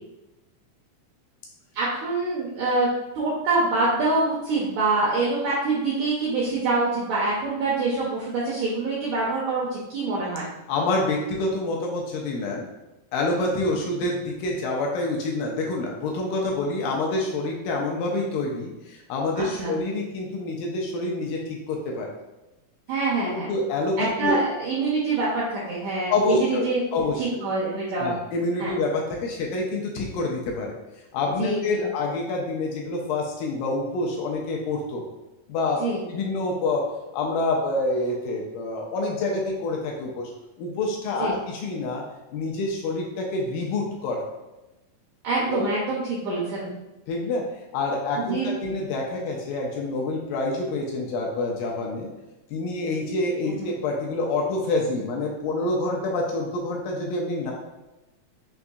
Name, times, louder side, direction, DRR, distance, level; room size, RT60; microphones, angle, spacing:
voice 1, 1.7-2.9 3.1-10.5 19.4-19.7 22.9-23.6 24.0-26.8 27.2-28.2 28.6-28.7 31.4-31.9 35.8-36.0 41.2-41.4 45.2-46.7 48.3-48.5 53.5-53.7, right 3 dB, 80° right, -6 dB, 1.6 m, -25 dB
voice 2, 10.7-12.7 13.1-22.1 23.3-24.4 26.1-27.2 28.0-30.8 31.1-35.0 35.5-35.8 36.1-36.9 37.1-40.3 40.6-42.0 42.3-44.2 45.5-45.7 47.1-52.1 52.5-57.5, left 2 dB, 80° left, -1 dB, 2.1 m, -27 dB
5.7 x 2.6 x 2.3 m, 1.0 s
omnidirectional pair, 4.2 m